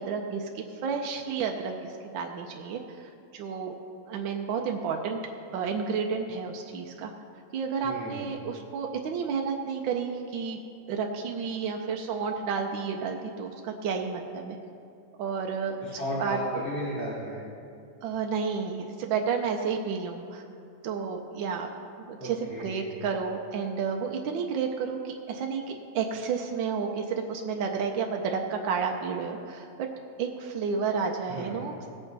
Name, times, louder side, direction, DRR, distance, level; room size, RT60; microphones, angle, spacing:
voice 1, 0.0-3.7 4.1-5.2 5.5-7.1 7.5-10.6 10.9-14.6 15.2-16.4 18.0-20.4 20.8-21.7 22.1-29.7 30.2-31.7, right 6 dB, 80° right, 2 dB, 1.5 m, -31 dB
voice 2, 7.8-8.2 15.8-17.4 22.2-22.9 31.3-31.5, equal, 25° left, -11 dB, 3.2 m, -34 dB
17.5 x 8.4 x 4.0 m, 2.4 s
omnidirectional pair, 2.1 m